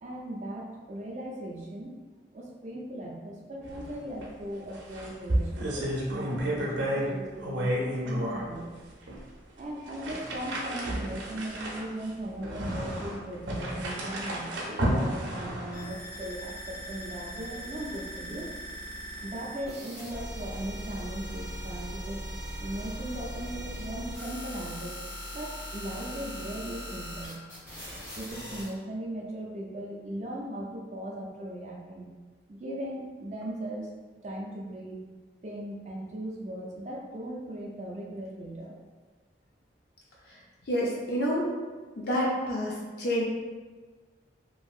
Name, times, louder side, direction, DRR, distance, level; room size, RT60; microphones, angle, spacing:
voice 1, 0.0-2.0 2.3-8.8 9.6-18.5 19.2-22.2 22.6-25.0 25.3-27.4 28.2-32.1 32.5-33.9 34.2-35.0 35.4-38.7, right 1 dB, 40° right, -1 dB, 0.4 m, -38 dB
sound 1, 3.6-3.9 4.2-4.3 4.7-7.1 7.4-8.4 9.1-9.2 9.9-15.9, equal, 80° right, 0.6 m, -31 dB
sound 2, 15.7-28.7, equal, 15° left, 0.8 m, -40 dB
voice 2, 40.3-41.5 41.9-43.2, equal, 60° left, -4 dB, 0.4 m, -29 dB
2.9 x 2.7 x 2.4 m, 1.4 s
head